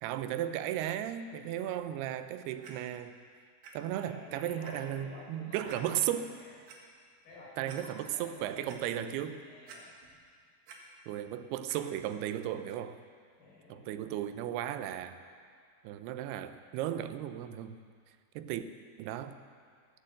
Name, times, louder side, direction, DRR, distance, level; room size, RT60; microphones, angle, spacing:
voice 1, 0.0-3.2 3.7-6.3 7.6-9.4 11.1-13.0 13.7-15.2 15.8-17.8 18.4-18.6 19.0-19.4, right 11 dB, 90° right, 11 dB, 2.7 m, -35 dB
Clock, 2.6-2.7 3.6-3.7 4.2-4.3 4.6-4.7 5.7-5.8 6.4-6.8 7.3-7.4 7.7-7.8 8.3-8.8 9.7-10.2 10.5-10.8 11.7-11.8 12.5-12.6, right 5 dB, 70° right, 3.1 m, -50 dB
voice 2, 4.1-6.5 7.2-9.9 13.4-13.9, left 3 dB, 70° left, -6 dB, 6.1 m, -51 dB
18.0 x 7.5 x 7.7 m, 2.1 s
omnidirectional pair, 4.5 m